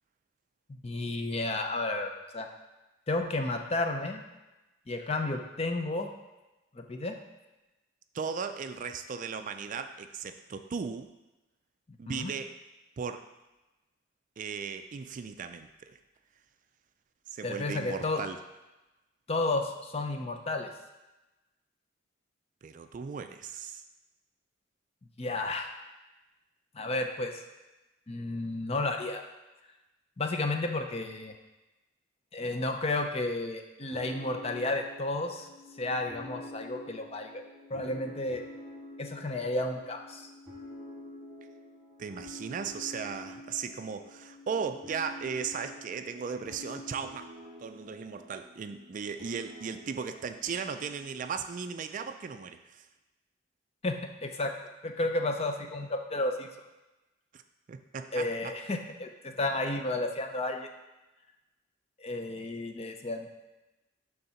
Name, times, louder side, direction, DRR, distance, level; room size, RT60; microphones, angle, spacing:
voice 1, 0.8-2.5 3.1-4.2 4.9-6.1 6.7-7.2 12.1-12.3 17.4-18.2 19.3-20.7 25.2-25.8 26.7-27.4 28.1-29.2 30.2-31.3 32.3-35.5 35.8-37.4 37.7-38.4 39.0-40.3 53.8-54.5 54.8-56.5 58.1-60.7 62.0-63.3, left 2 dB, 30° left, 5 dB, 0.6 m, -32 dB
voice 2, 8.1-11.1 12.0-12.5 13.0-13.2 14.4-15.7 17.3-18.4 22.6-23.8 42.0-47.3 47.6-52.8 57.3-57.4 57.7-58.5, right 6 dB, 40° right, 8 dB, 0.3 m, -37 dB
sound 1, 33.9-51.4, left 1 dB, 5° right, 1.5 m, -48 dB
6.8 x 3.6 x 5.7 m, 1.0 s
head